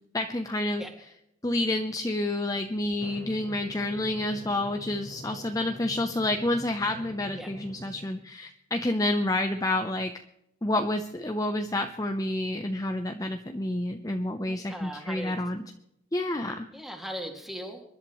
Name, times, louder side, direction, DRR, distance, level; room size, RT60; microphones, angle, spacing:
voice 1, 0.1-0.8 1.4-10.1 10.6-15.6 16.1-16.5, left 1 dB, 20° left, 5 dB, 0.7 m, -29 dB
Drum, 3.0-8.0, left 1 dB, 60° right, 4.0 m, -45 dB
voice 2, 14.4-15.4 16.7-17.8, equal, ahead, 2 dB, 2.2 m, -39 dB
26.0 x 11.5 x 3.1 m, 0.82 s
head